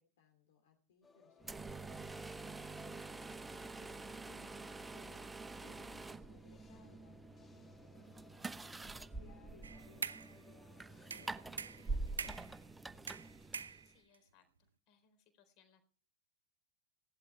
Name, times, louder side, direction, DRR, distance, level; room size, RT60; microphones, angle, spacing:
voice 1, 0.0-3.2 3.6-5.2 5.6-7.2 7.6-8.1 8.6-13.5, left 5 dB, 60° left, 4 dB, 2.7 m, -66 dB
sound 1, 1.0-12.4, left 6 dB, 20° left, 2.2 m, -66 dB
sound 2, 1.4-14.0, right 3 dB, 10° right, 0.9 m, -46 dB
sound 3, 9.6-10.4 11.1-12.6 13.1-14.2, right 6 dB, 70° right, 0.8 m, -44 dB
voice 2, 13.8-14.5 14.9-15.8, left 8 dB, 40° left, 9 dB, 4.1 m, -70 dB
17.5 x 11.5 x 4.5 m, 0.40 s
figure-of-eight pair, 90°, 0 cm